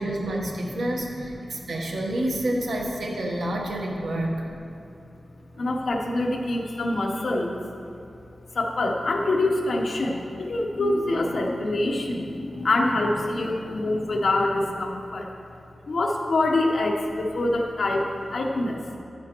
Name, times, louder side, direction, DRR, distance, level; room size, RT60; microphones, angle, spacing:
voice 1, 0.0-4.4 5.5-5.6, right 1 dB, 90° right, 0 dB, 1.3 m, -28 dB
voice 2, 5.6-7.5 8.5-15.3 15.9-18.8, left 2 dB, 65° left, 1 dB, 1.0 m, -25 dB
11.0 x 10.0 x 3.1 m, 2.6 s
wide cardioid pair, 130°, 0 cm